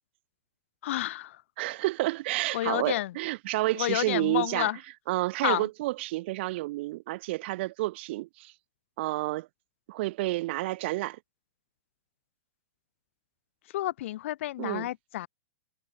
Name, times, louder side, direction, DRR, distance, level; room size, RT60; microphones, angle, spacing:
voice 1, 0.8-1.4 2.5-3.1 3.8-4.8 5.4-5.7 13.7-15.3, left 15 dB, 55° left, 0.8 m, -30 dB
voice 2, 1.6-4.7 5.1-8.5 9.0-9.5 9.9-11.2 14.6-14.9, right 19 dB, 50° right, 1.5 m, -30 dB
hypercardioid pair, 150°, 8 cm